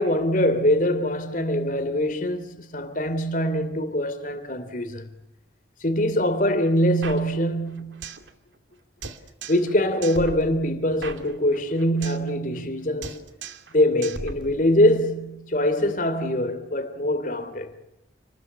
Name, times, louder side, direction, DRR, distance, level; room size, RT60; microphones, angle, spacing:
voice 1, 0.0-5.1 5.8-8.0 9.5-13.2 13.7-17.7, left 1 dB, 45° left, 3.1 m, -23 dB
sound 1, 7.0-8.3 8.6-8.7 9.0-9.7 10.0-12.3 12.5-12.8 13.0-13.7 14.0-15.0, right 4 dB, 85° right, 2.5 m, -38 dB
29.5 x 21.0 x 8.6 m
head